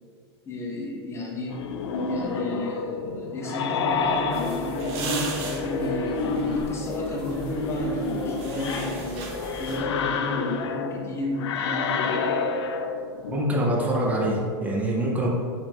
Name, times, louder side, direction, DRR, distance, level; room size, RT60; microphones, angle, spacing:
voice 1, 0.5-1.6 2.0-9.3 9.6-12.2, left 1 dB, 20° left, -2 dB, 0.8 m, -32 dB
sound 1, 1.5-13.4, left 4 dB, 85° left, 0.5 m, -29 dB
sound 2, 3.9-10.1, right 3 dB, 45° right, 0.7 m, -39 dB
sound 3, 4.3-9.8, left 1 dB, 40° left, 1.5 m, -39 dB
voice 2, 13.3-15.3, right 1 dB, 10° right, -2 dB, 0.7 m, -24 dB
5.1 x 3.4 x 2.9 m, 2.1 s
supercardioid pair, 145°, 14 cm